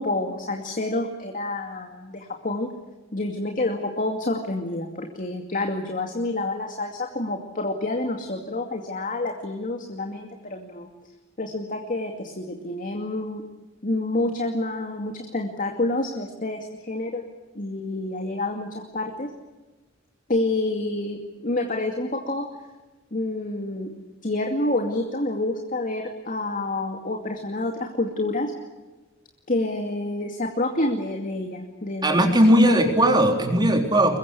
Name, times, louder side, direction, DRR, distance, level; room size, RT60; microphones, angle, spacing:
voice 1, 0.0-2.7 3.1-10.9 11.4-13.4 13.8-17.2 17.5-19.3 20.3-22.5 23.1-23.9 24.2-28.5 29.5-32.9, left 2 dB, 45° left, 3 dB, 2.4 m, -28 dB
voice 2, 32.0-34.2, right 1 dB, 20° right, 4 dB, 3.7 m, -18 dB
23.5 x 22.0 x 8.4 m, 1.2 s
head